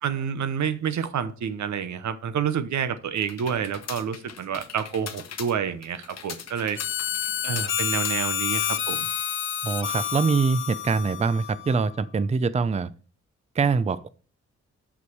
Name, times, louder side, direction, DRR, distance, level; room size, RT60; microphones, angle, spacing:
voice 1, 0.0-6.8 7.4-9.1, right 7 dB, 75° right, 0.9 m, -28 dB
sound 1, 3.1-8.7, left 7 dB, 60° left, 1.0 m, -41 dB
Harmonica, 6.8-11.9, left 9 dB, 45° left, 0.5 m, -29 dB
voice 2, 9.6-12.9 13.5-14.1, right 4 dB, 25° right, 0.5 m, -24 dB
6.3 x 5.7 x 4.6 m
cardioid pair, 60°, 29 cm